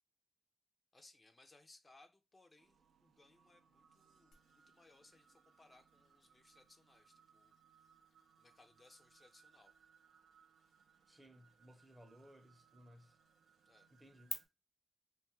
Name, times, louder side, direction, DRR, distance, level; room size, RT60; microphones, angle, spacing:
voice 1, 0.9-7.9 8.4-9.7 13.7-13.9, left 2 dB, 30° left, 0.4 m, -66 dB
sound 1, 2.6-14.5, right 7 dB, 85° right, 0.4 m, -70 dB
sound 2, 4.3-14.3, left 6 dB, 80° left, 0.5 m, -57 dB
voice 2, 11.1-13.2 13.9-14.3, equal, 20° right, 0.6 m, -61 dB
2.5 x 2.3 x 2.9 m
cardioid pair, 75°, 0 cm